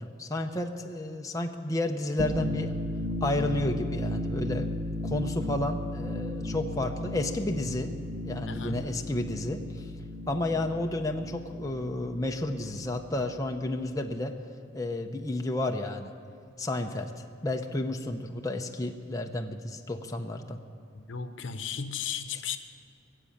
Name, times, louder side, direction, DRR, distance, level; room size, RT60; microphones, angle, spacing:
voice 1, 0.0-2.8 3.2-4.7 5.0-7.9 8.2-9.9 10.3-14.4 14.7-16.1 16.6-17.1 17.4-20.6, left 1 dB, 20° left, 3 dB, 0.7 m, -31 dB
sound 1, 2.2-13.6, left 1 dB, 70° right, 0.9 m, -35 dB
voice 2, 8.5-8.8 20.9-22.6, left 7 dB, 75° left, 9 dB, 0.9 m, -35 dB
20.5 x 7.7 x 8.6 m, 2.4 s
head